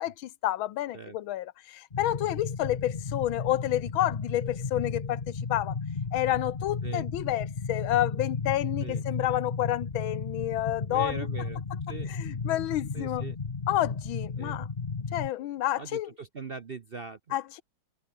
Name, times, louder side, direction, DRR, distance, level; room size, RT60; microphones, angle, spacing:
voice 1, 0.0-5.7 6.1-11.3 12.1-13.2 13.7-14.7 15.1-16.1 17.3-17.6, left 14 dB, 80° left, 1.7 m, -29 dB
sound 1, 1.9-15.3, left 4 dB, 30° left, 0.9 m, -34 dB
voice 2, 10.9-11.6 11.9-12.1 12.9-13.4 14.4-14.6 15.8-17.4, right 4 dB, 55° right, 0.6 m, -40 dB
omnidirectional pair, 2.3 m